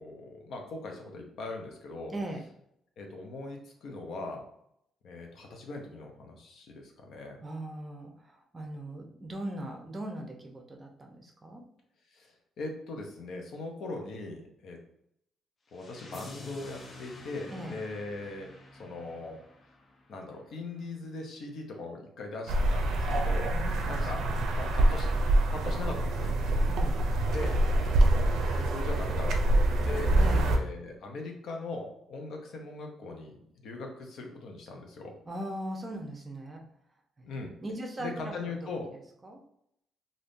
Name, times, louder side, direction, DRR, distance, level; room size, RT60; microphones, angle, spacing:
voice 1, 0.0-2.1 3.0-4.4 5.0-7.4 12.1-14.8 15.7-18.5 18.8-19.4 20.1-23.6 23.8-24.2 24.5-25.1 25.5-26.3 27.3-27.6 28.5-30.2 30.5-35.1 37.3-37.5 38.0-38.9, left 3 dB, 70° left, 2 dB, 0.8 m, -40 dB
voice 2, 2.1-2.5 7.4-8.1 8.5-11.6 17.5-17.7 23.5-24.4 26.5-27.0 30.1-30.5 35.3-36.6 37.2-37.3 37.6-38.4 39.2-39.4, right 1 dB, 30° right, 2 dB, 0.7 m, -39 dB
sound 1, 15.7-20.7, left 1 dB, 40° left, 0.7 m, -49 dB
sound 2, 22.5-30.6, right 1 dB, 75° right, 0.5 m, -25 dB
3.5 x 2.6 x 2.6 m, 0.74 s
cardioid pair, 90°, 0 cm